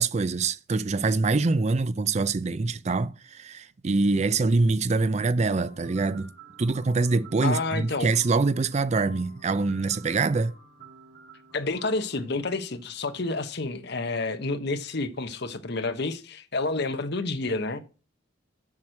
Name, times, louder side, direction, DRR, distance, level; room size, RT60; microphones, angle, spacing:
voice 1, 0.0-6.3 6.6-10.5, right 3 dB, 30° right, 0.4 m, -24 dB
sound 1, 5.5-13.4, right 4 dB, 50° right, 3.4 m, -51 dB
voice 2, 7.4-8.1 11.5-17.8, left 3 dB, 50° left, 1.0 m, -29 dB
7.3 x 6.2 x 7.6 m
head